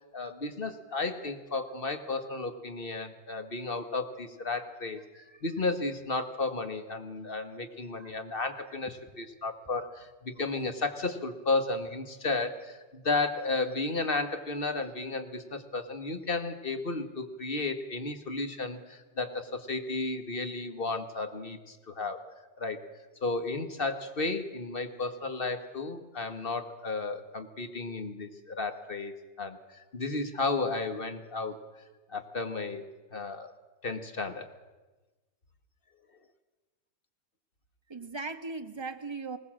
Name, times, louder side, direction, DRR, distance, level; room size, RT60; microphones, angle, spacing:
voice 1, 0.1-5.0 5.4-22.2 22.6-22.8 23.2-31.6 32.1-33.5 33.8-34.5, left 3 dB, 40° left, 8 dB, 1.6 m, -33 dB
voice 2, 37.9-39.4, right 3 dB, 20° right, 8 dB, 1.0 m, -39 dB
20.5 x 18.5 x 7.5 m, 1.2 s
omnidirectional pair, 1.5 m